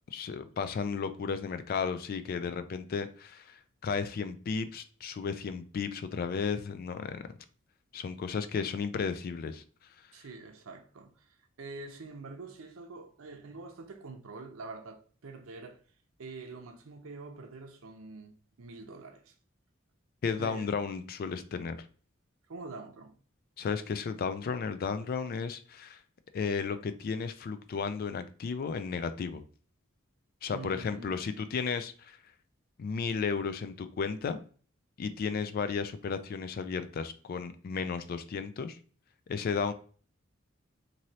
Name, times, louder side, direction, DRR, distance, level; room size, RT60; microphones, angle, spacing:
voice 1, 0.1-7.2 7.9-9.6 20.2-21.8 23.6-26.0 26.3-29.4 30.4-32.2 32.8-34.4 35.0-38.8 39.3-39.7, left 5 dB, 45° left, 0.3 m, -34 dB
voice 2, 10.1-15.8 16.2-19.4 20.4-20.8 22.5-23.2 30.5-31.1, right 3 dB, 90° right, 0.6 m, -45 dB
3.1 x 2.6 x 2.7 m
head